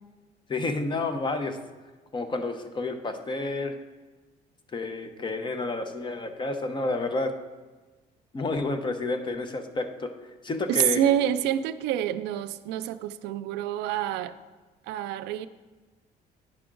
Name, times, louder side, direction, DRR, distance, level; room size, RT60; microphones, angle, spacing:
voice 1, 0.5-1.6 2.1-3.8 4.7-7.3 8.3-10.1 10.4-11.0, left 3 dB, 30° left, 7 dB, 0.8 m, -30 dB
voice 2, 10.7-14.3 14.9-15.5, right 11 dB, 90° right, 12 dB, 0.4 m, -27 dB
9.7 x 5.9 x 3.8 m, 1.3 s
cardioid pair, 110°, 17 cm